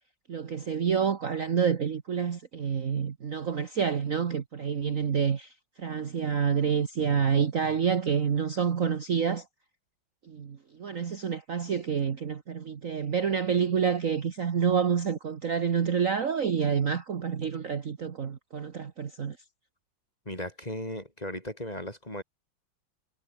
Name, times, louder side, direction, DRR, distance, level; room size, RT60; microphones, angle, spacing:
voice 1, 0.3-5.5 5.8-9.4 10.3-19.4, right 7 dB, 45° right, 1.6 m, -28 dB
voice 2, 20.2-22.2, left 1 dB, 20° left, 6.4 m, -37 dB
omnidirectional pair, 2.1 m